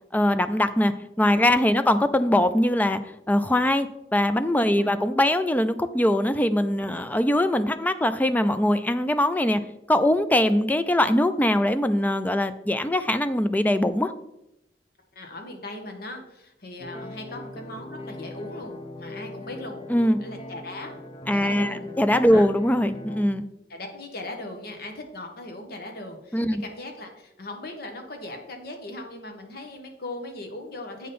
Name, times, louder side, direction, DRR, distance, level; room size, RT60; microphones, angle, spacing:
voice 1, 0.1-3.0 3.3-9.6 9.9-14.1 19.9-20.2 21.3-23.4 26.3-26.6, left 1 dB, 10° left, 11 dB, 0.4 m, -22 dB
voice 2, 15.1-19.8 20.2-20.9 21.3-21.9 22.3-22.5 23.7-31.1, left 2 dB, 60° left, 4 dB, 1.4 m, -39 dB
sound 1, 16.8-23.3, left 2 dB, 30° left, 0.8 m, -40 dB
8.4 x 5.5 x 4.3 m, 0.85 s
head